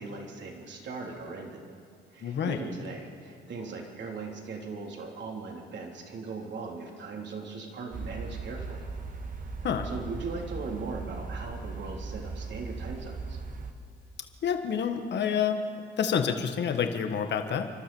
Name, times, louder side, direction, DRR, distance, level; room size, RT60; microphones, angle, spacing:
voice 1, 0.0-1.6 2.1-8.9 9.8-13.4, right 4 dB, 65° right, 0 dB, 3.5 m, -39 dB
voice 2, 2.2-2.6 9.6-9.9 14.4-15.6 16.0-17.7, left 7 dB, 60° left, 6 dB, 1.5 m, -28 dB
sound 1, 7.9-13.7, right 4 dB, 45° right, 1.6 m, -38 dB
29.5 x 12.5 x 7.1 m, 2.2 s
cardioid pair, 90°, 20 cm